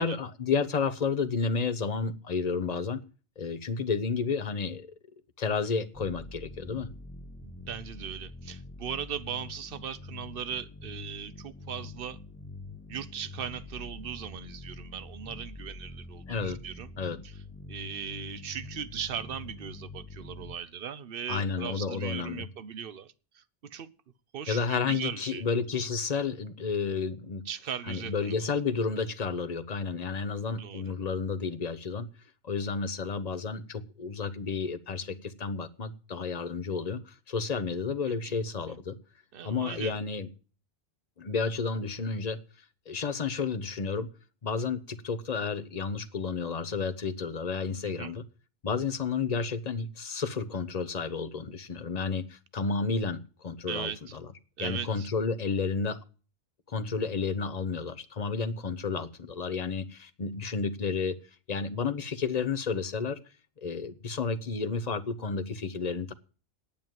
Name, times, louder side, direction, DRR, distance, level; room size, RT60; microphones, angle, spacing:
voice 1, 0.0-3.0 3.4-4.9 5.4-6.9 16.3-16.6 17.0-17.2 21.3-22.5 24.5-27.4 27.9-32.1 32.4-39.0 39.4-40.3 41.2-42.4 42.9-44.1 44.4-48.2 48.6-54.2 54.6-56.0 56.7-61.2 61.5-63.2 63.6-66.1, left 5 dB, 40° left, 1.0 m, -31 dB
sound 1, 5.9-20.5, left 2 dB, 15° left, 0.9 m, -45 dB
voice 2, 7.4-12.2 12.9-16.9 17.2-17.3 17.7-23.9 24.3-25.4 27.5-28.5 30.6-30.9 38.2-38.3 39.3-40.0 47.8-48.1 53.7-54.0 54.6-55.1, right 8 dB, 65° right, 1.0 m, -38 dB
9.3 x 8.8 x 9.1 m
omnidirectional pair, 1.0 m